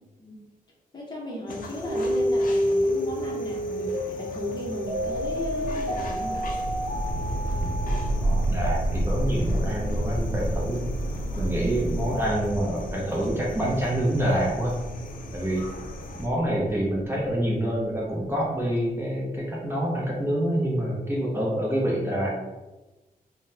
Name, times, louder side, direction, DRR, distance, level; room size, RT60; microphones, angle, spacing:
voice 1, 0.9-6.5, left 1 dB, 30° left, -3 dB, 0.7 m, -35 dB
sound 1, 1.5-16.3, left 3 dB, 65° left, 0.4 m, -41 dB
sound 2, 1.9-7.9, equal, 50° right, 0.8 m, -28 dB
sound 3, 4.9-18.0, right 1 dB, 80° right, 0.4 m, -30 dB
voice 2, 8.2-10.9 11.4-14.7 15.3-15.7 16.1-22.3, right 1 dB, 15° right, -5 dB, 0.5 m, -26 dB
3.7 x 2.1 x 2.7 m, 1.1 s
wide cardioid pair, 155°, 15 cm